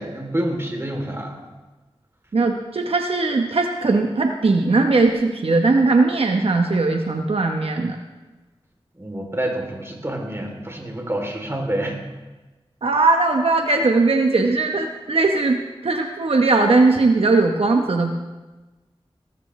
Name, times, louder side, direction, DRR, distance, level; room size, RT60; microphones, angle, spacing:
voice 1, 0.0-1.4 9.0-12.0, right 1 dB, 25° right, 1 dB, 3.0 m, -27 dB
voice 2, 2.3-8.0 12.8-18.1, right 3 dB, 75° right, 3 dB, 0.9 m, -19 dB
19.0 x 13.0 x 3.2 m, 1.2 s
wide cardioid pair, 55°, 10 cm